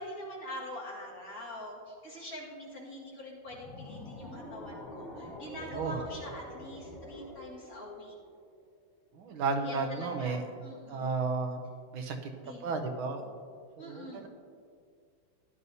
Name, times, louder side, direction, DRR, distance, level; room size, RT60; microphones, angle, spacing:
voice 1, 0.0-8.2 9.6-11.2 12.4-12.6 13.8-14.2, left 1 dB, 45° left, -5 dB, 2.2 m, -44 dB
sound 1, 3.4-8.7, left 1 dB, 75° left, 2.4 m, -46 dB
voice 2, 5.6-6.0 9.2-10.4 10.9-11.6 11.9-12.2 12.6-13.3 13.8-14.3, right 4 dB, 85° right, 4 dB, 1.7 m, -33 dB
15.5 x 11.0 x 2.7 m, 2.2 s
omnidirectional pair, 2.2 m